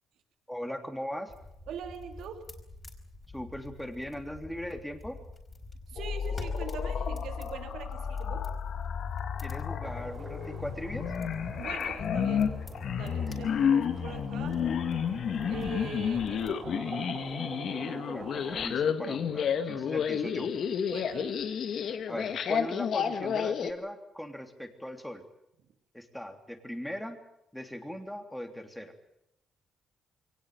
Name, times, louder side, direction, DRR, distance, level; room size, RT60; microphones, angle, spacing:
voice 1, 0.5-1.3 3.3-5.2 9.4-11.1 17.8-20.5 22.1-25.2 25.9-27.2 27.5-28.9, equal, 5° left, 6 dB, 3.1 m, -39 dB
sound 1, 1.3-16.5, left 2 dB, 30° left, 4.7 m, -48 dB
voice 2, 1.7-2.4 5.9-8.5 11.5-12.5 12.9-14.6 15.4-16.6 20.9-21.6, right 7 dB, 75° right, 7 dB, 2.8 m, -42 dB
sound 2, 6.0-23.7, left 7 dB, 65° left, 1.8 m, -31 dB
sound 3, 9.8-18.7, right 4 dB, 40° right, 1.9 m, -46 dB
22.5 x 19.0 x 9.3 m, 0.81 s
cardioid pair, 90°, 0 cm